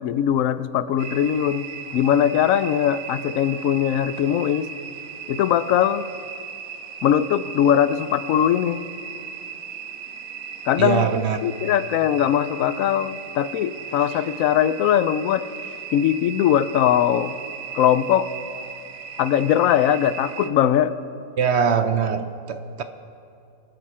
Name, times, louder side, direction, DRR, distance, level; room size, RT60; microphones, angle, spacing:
voice 1, 0.0-1.7 1.9-4.7 5.3-6.0 7.0-8.8 10.7-11.1 11.4-15.5 15.9-17.3 17.7-18.3 19.2-20.9, left 10 dB, 75° left, 15 dB, 1.0 m, -20 dB
sound 1, 1.0-20.5, right 6 dB, 85° right, 1.3 m, -37 dB
voice 2, 10.8-11.4 21.4-22.8, right 7 dB, 60° right, 9 dB, 0.8 m, -22 dB
25.5 x 9.5 x 4.3 m, 2.6 s
omnidirectional pair, 1.5 m